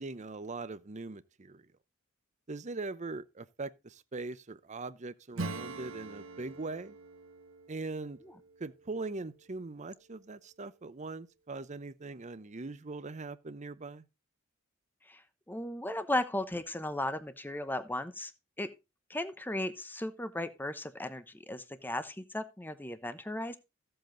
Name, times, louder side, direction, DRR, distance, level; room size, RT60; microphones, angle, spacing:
voice 1, 0.0-1.6 2.5-7.0 7.7-8.2 8.6-14.0, right 3 dB, 35° right, 0.7 m, -41 dB
Acoustic guitar / Strum, 5.3-9.6, right 3 dB, 75° right, 1.0 m, -44 dB
voice 2, 15.5-18.3 18.6-18.7 19.1-23.6, left 1 dB, 10° left, 0.8 m, -36 dB
13.5 x 7.9 x 3.9 m
head